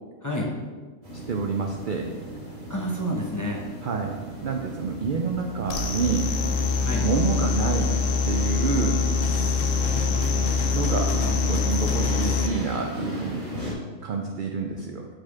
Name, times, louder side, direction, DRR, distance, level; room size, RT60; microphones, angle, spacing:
voice 1, 0.2-0.5 2.7-3.6 6.8-7.1 9.6-10.2, equal, 15° left, -3 dB, 0.7 m, -30 dB
sound 1, 1.0-13.7, right 1 dB, 40° right, 1.7 m, -36 dB
voice 2, 1.3-2.1 3.8-6.3 7.0-8.0 8.2-9.0 10.6-13.5 14.0-15.1, right 5 dB, 60° right, 2 dB, 0.5 m, -28 dB
sound 2, 5.7-12.5, left 5 dB, 75° left, 1.1 m, -24 dB
4.9 x 4.5 x 5.7 m, 1.4 s
omnidirectional pair, 1.3 m